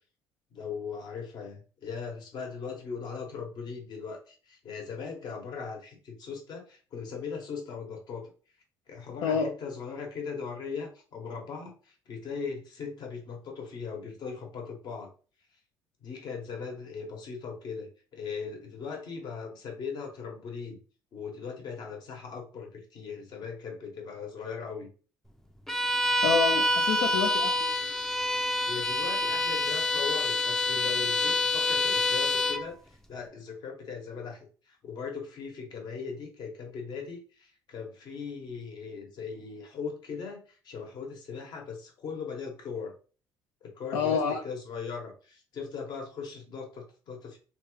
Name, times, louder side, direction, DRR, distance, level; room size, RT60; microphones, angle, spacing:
voice 1, 0.5-8.3 8.9-15.1 16.0-20.8 21.1-24.9 28.7-42.9 43.6-47.4, left 5 dB, 60° left, 2 dB, 1.1 m, -39 dB
Bowed string instrument, 25.7-32.7, left 2 dB, 5° left, 0.4 m, -27 dB
voice 2, 26.2-27.7 43.9-44.4, left 6 dB, 90° left, 2 dB, 0.4 m, -27 dB
3.0 x 2.4 x 3.1 m, 0.38 s
supercardioid pair, 85°, 8 cm